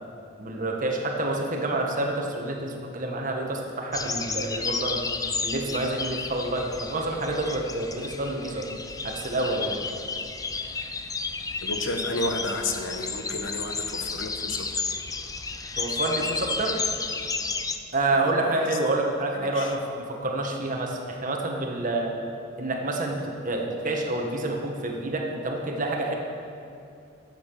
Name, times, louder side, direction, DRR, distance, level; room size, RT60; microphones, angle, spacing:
voice 1, 0.4-5.0 5.4-8.7 9.0-9.8 15.8-16.8 17.9-19.8 20.1-22.2 22.6-26.2, right 2 dB, 45° right, 1 dB, 1.5 m, -28 dB
sound 1, 3.9-17.8, left 4 dB, 20° left, 0.5 m, -32 dB
voice 2, 11.6-14.7 18.0-18.8 19.3-19.8, left 2 dB, 75° left, 5 dB, 1.2 m, -32 dB
12.0 x 8.0 x 6.9 m, 2.5 s
head